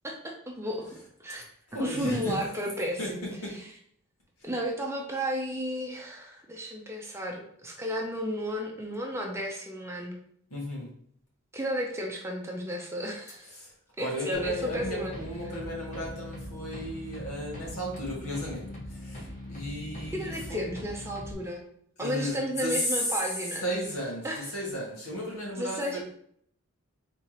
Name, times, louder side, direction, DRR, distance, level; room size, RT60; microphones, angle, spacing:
voice 1, 0.0-1.4 1.8-3.2 3.5-3.7 4.4-10.2 11.5-13.5 14.0-15.1 20.1-21.6 22.0-23.6 24.2-24.5 25.6-26.0, equal, 10° right, 0 dB, 0.6 m, -33 dB
voice 2, 1.7-2.5 3.0-3.1 3.4-3.5 10.5-10.9 13.5-13.7 14.0-20.6 22.0-23.0 23.6-26.0, equal, 85° left, -4 dB, 1.9 m, -34 dB
sound 1, 14.3-21.3, left 1 dB, 35° left, 1.2 m, -41 dB
4.6 x 3.7 x 2.9 m, 0.66 s
head